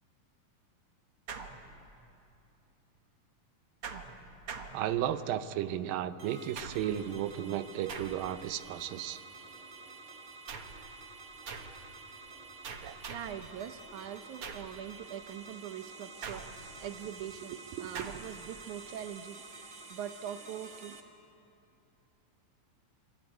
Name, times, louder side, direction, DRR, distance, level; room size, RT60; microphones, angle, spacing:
sound 1, 1.3-2.1 3.8-5.3 6.5-7.1 7.9-8.5 10.5-10.9 11.5-11.9 12.6-13.4 14.4-14.8 16.2-16.9 17.9-18.4, right 5 dB, 50° right, 1.9 m, -44 dB
voice 1, 4.7-9.2 12.8-13.0, right 11 dB, 90° right, 11 dB, 2.6 m, -34 dB
sound 2, 6.2-21.0, right 3 dB, 30° right, 1.7 m, -50 dB
voice 2, 13.1-21.0, right 10 dB, 70° right, 9 dB, 2.0 m, -42 dB
25.0 x 24.5 x 9.5 m, 2.7 s
omnidirectional pair, 4.0 m